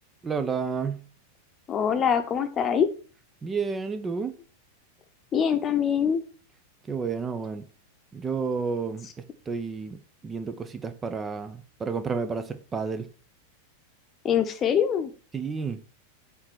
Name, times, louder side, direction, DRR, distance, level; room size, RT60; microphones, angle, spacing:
voice 1, 0.2-1.1 3.4-4.4 6.9-7.7 8.1-13.1 15.3-15.8, right 5 dB, 20° right, 0.8 m, -31 dB
voice 2, 1.7-2.9 5.3-6.2 14.2-15.1, left 8 dB, 25° left, 1.0 m, -24 dB
7.5 x 4.2 x 6.1 m
figure-of-eight pair, 90°, 0 cm